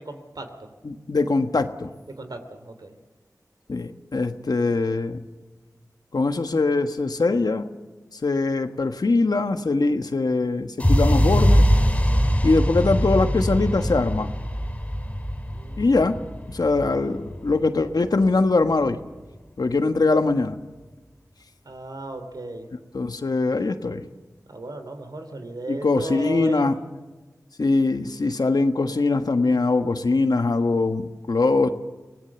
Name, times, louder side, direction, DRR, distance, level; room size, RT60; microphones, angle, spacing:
voice 1, 0.0-0.7 2.2-2.9 15.5-16.0 21.6-22.7 24.5-26.7, right 2 dB, 80° right, 7 dB, 2.8 m, -35 dB
voice 2, 0.8-1.9 3.7-5.2 6.1-7.7 8.2-11.7 12.4-14.3 15.8-16.2 16.5-19.0 19.6-20.6 22.9-24.1 25.7-26.7 27.6-31.7, left 3 dB, 80° left, 8 dB, 1.4 m, -22 dB
sound 1, 10.8-18.7, equal, 20° left, 2.7 m, -22 dB
25.0 x 18.5 x 7.1 m, 1.2 s
wide cardioid pair, 45°, 7 cm